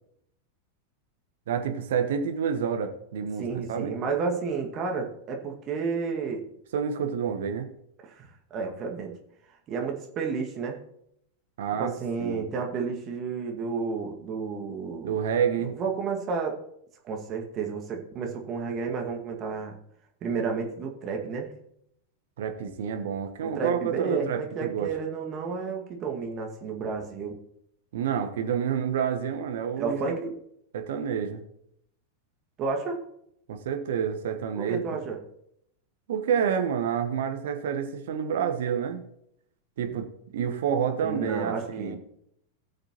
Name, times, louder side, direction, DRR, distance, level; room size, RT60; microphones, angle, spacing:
voice 1, 1.5-3.9 6.7-7.7 11.6-11.9 12.2-12.5 15.0-15.7 22.4-24.9 27.9-30.1 30.7-31.4 33.5-34.8 36.1-39.0 39.8-40.1 40.3-42.0, right 7 dB, 60° right, 6 dB, 1.2 m, -28 dB
voice 2, 3.4-6.5 8.0-9.2 9.7-10.8 11.8-15.2 15.6-16.6 17.0-19.8 20.2-21.5 23.4-27.4 29.8-30.3 32.6-33.0 34.5-35.2 41.0-42.0, right 5 dB, 30° right, 2 dB, 2.0 m, -31 dB
18.0 x 6.6 x 3.0 m, 0.75 s
figure-of-eight pair, 90°, 0 cm